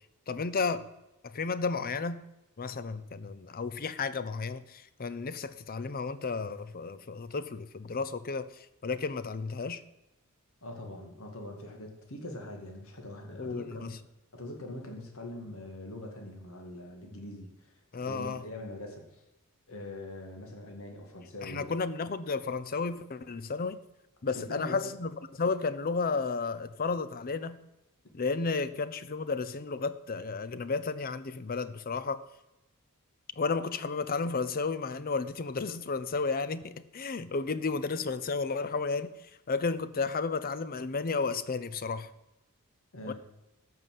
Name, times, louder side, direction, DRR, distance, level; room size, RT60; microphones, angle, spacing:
voice 1, 0.3-0.9 1.3-2.3 2.6-8.5 8.8-9.8 13.4-14.0 17.9-18.4 21.4-23.8 24.2-27.6 28.1-32.2 33.4-39.1 39.5-42.1 43.0-43.1, left 4 dB, 40° left, 0.6 m, -32 dB
voice 2, 10.6-13.9 14.3-17.7 18.0-19.2 19.7-21.7 24.3-24.9 42.9-43.1, left 1 dB, 65° left, 2.2 m, -42 dB
13.5 x 5.6 x 7.5 m
head